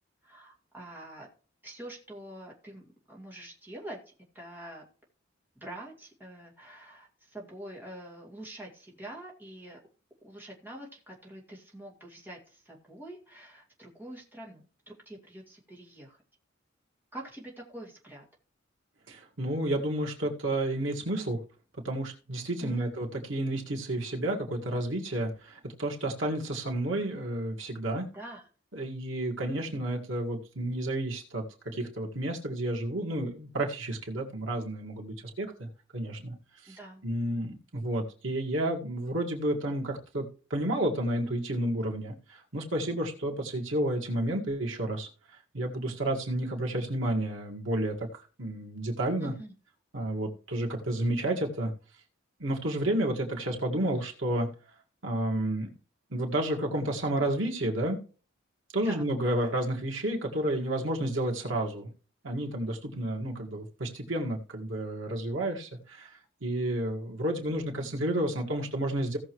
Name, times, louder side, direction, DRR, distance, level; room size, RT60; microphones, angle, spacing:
voice 1, 0.2-1.3 1.6-4.8 5.6-9.8 10.2-16.2 17.1-18.2 22.6-22.9 28.1-28.5 36.7-37.0 49.2-49.5 58.8-59.0, right 1 dB, 10° right, -2 dB, 2.2 m, -45 dB
voice 2, 19.1-21.4 21.8-28.1 28.7-36.3 36.6-45.1 45.5-48.1 48.4-49.3 49.9-51.7 52.4-54.5 55.0-55.7 56.1-58.0 58.7-61.9 62.2-66.1 66.4-69.2, right 1 dB, 85° right, 0 dB, 2.1 m, -31 dB
16.5 x 6.6 x 3.1 m, 0.37 s
head